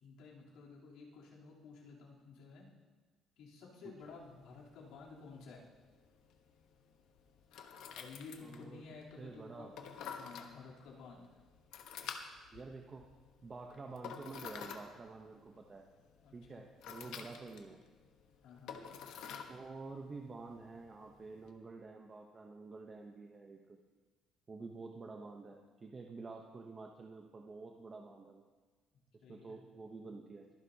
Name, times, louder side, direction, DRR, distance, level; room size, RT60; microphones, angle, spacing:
voice 1, 0.0-2.7 3.4-5.6 7.9-9.7 10.1-11.3 16.2-16.6 17.0-17.3 18.4-18.8 29.2-29.6, left 4 dB, 90° left, -4 dB, 3.1 m, -53 dB
sound 1, 4.0-21.5, left 7 dB, 70° left, 1.0 m, -51 dB
voice 2, 8.4-8.8 9.2-9.7 12.5-13.1 13.4-15.9 16.3-17.8 19.5-23.8 24.5-28.4 29.3-30.5, right 3 dB, 20° right, 2 dB, 0.7 m, -49 dB
23.0 x 10.0 x 2.7 m, 1.3 s
cardioid pair, 180°, 0 cm